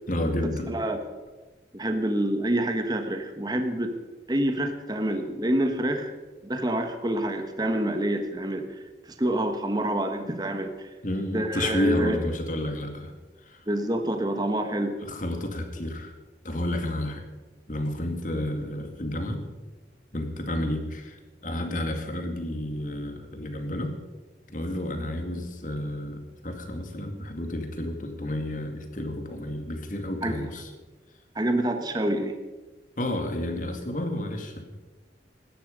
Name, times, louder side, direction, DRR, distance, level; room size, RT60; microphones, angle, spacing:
voice 1, 0.1-0.8 11.0-13.1 13.4-13.6 15.0-16.1 16.4-17.2 17.7-19.4 20.1-24.0 24.5-30.7 33.0-34.6, left 1 dB, 45° left, 5 dB, 2.2 m, -31 dB
voice 2, 0.7-1.0 1.7-3.9 4.3-6.1 6.4-8.6 9.1-10.9 11.3-12.2 13.7-14.9 30.2-30.3 31.3-32.4, right 1 dB, 25° right, 6 dB, 1.3 m, -27 dB
17.0 x 13.0 x 5.3 m, 1.2 s
head